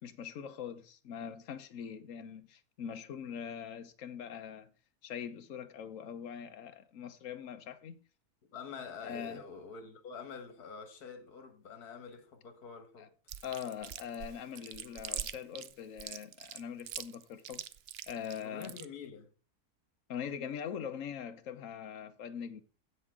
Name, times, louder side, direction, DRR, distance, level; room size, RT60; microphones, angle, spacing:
voice 1, 0.0-4.7 5.0-8.0 9.0-9.4 13.0-13.1 13.4-17.6 18.1-18.8 20.1-22.6, left 8 dB, 60° left, 1.2 m, -42 dB
voice 2, 8.5-13.1 18.4-19.3, left 6 dB, 75° left, 1.9 m, -46 dB
Chewing mastication, 13.3-18.8, right 10 dB, 70° right, 0.5 m, -42 dB
16.0 x 5.5 x 3.7 m
omnidirectional pair, 1.6 m